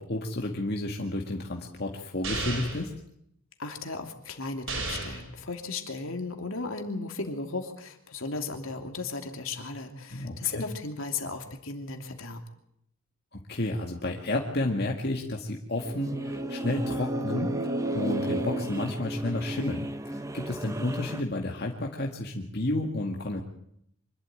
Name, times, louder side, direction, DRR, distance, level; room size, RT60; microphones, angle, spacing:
voice 1, 0.0-2.9 10.1-10.6 13.3-17.6 17.9-23.4, left 1 dB, 50° left, 0 dB, 2.0 m, -31 dB
sound 1, 2.2-2.9 4.7-5.3, right 3 dB, 70° right, 6.0 m, -33 dB
voice 2, 3.6-12.4, left 3 dB, 70° left, 4 dB, 2.8 m, -35 dB
sound 2, 15.8-21.2, equal, 15° right, 0.8 m, -35 dB
sound 3, 15.9-19.8, right 2 dB, 40° right, 1.1 m, -34 dB
25.5 x 12.5 x 9.0 m, 0.73 s
head